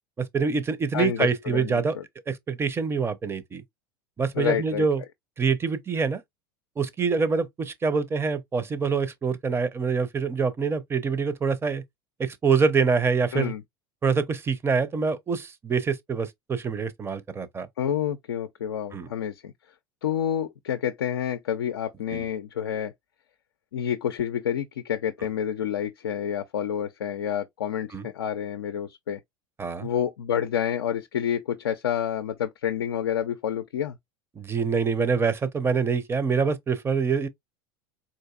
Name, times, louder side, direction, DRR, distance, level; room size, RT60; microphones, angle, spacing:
voice 1, 0.2-2.0 2.3-3.6 4.2-5.0 5.4-6.2 6.8-11.8 12.2-13.5 14.0-17.7 18.9-19.1 22.1-22.3 27.9-28.0 29.6-29.9 34.4-37.3, right 5 dB, 20° right, 0.6 m, -25 dB
voice 2, 0.9-2.0 4.3-4.9 13.3-13.6 17.8-19.5 20.0-22.9 23.7-29.2 29.8-34.0, left 9 dB, 80° left, 0.4 m, -28 dB
3.9 x 2.5 x 2.3 m
hypercardioid pair, 80°, 12 cm